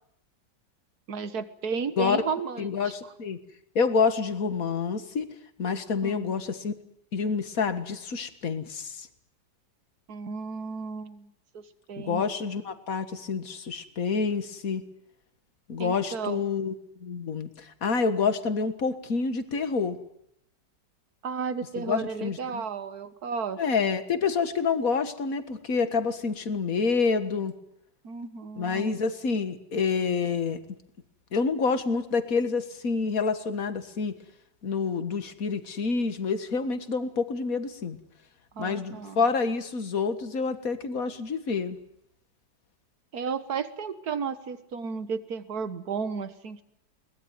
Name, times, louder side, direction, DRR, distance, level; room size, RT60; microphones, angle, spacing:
voice 1, 1.1-2.7 6.0-6.3 10.1-11.6 11.9-12.2 15.8-16.4 21.2-23.9 28.0-28.9 38.5-39.2 43.1-46.6, right 5 dB, 60° right, 12 dB, 1.8 m, -33 dB
voice 2, 2.6-3.4 3.8-5.3 5.6-6.7 7.1-9.1 12.0-14.8 15.7-16.7 17.0-20.0 21.8-22.6 23.6-27.5 28.6-30.6 31.3-34.1 34.6-38.0 38.6-41.8, left 5 dB, 50° left, 10 dB, 2.0 m, -28 dB
22.5 x 20.0 x 9.5 m, 0.75 s
omnidirectional pair, 1.9 m